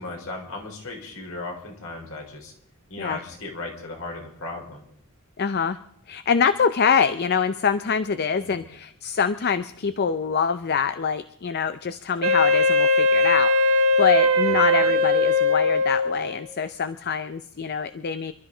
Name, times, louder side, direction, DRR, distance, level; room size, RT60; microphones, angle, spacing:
voice 1, 0.0-2.5 2.9-4.8 8.4-8.7 14.4-14.6, left 2 dB, 70° left, 1 dB, 4.0 m, -36 dB
voice 2, 5.4-5.8 6.1-18.3, left 6 dB, 50° left, 12 dB, 0.5 m, -25 dB
Wind instrument woodwind instrument, 12.2-16.5, left 2 dB, 80° right, 1.6 m, -20 dB
27.5 x 12.5 x 3.9 m, 0.71 s
head